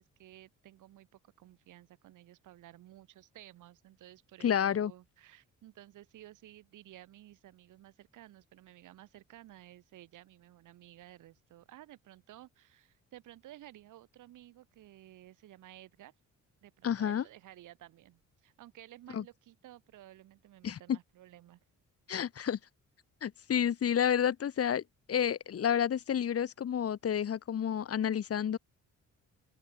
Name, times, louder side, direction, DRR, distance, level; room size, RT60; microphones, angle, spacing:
voice 1, 0.0-16.1 16.6-21.6, right 14 dB, 85° right, 6.9 m, -55 dB
voice 2, 4.4-4.9 16.8-17.2 19.1-19.2 20.6-21.0 22.1-22.6 23.2-24.8 25.1-28.6, left 9 dB, 50° left, 1.6 m, -30 dB
open air
cardioid pair, 90°, 30 cm